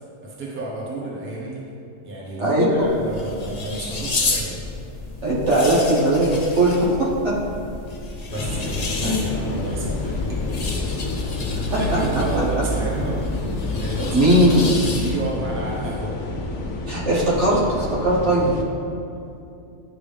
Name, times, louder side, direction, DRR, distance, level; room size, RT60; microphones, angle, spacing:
voice 1, 0.2-1.6 2.0-4.6 8.3-10.1 11.8-13.2 13.8-16.2, right 1 dB, 10° right, -5 dB, 0.9 m, -31 dB
sound 1, 2.6-15.4, left 3 dB, 40° left, 0.6 m, -32 dB
voice 2, 5.2-7.3 9.0-9.3 11.7-12.0 14.1-14.6 16.9-18.6, right 1 dB, 60° right, -6 dB, 1.6 m, -19 dB
sound 2, 8.3-18.6, left 1 dB, 70° left, 1.0 m, -28 dB
10.0 x 3.6 x 3.3 m, 2.7 s
omnidirectional pair, 1.4 m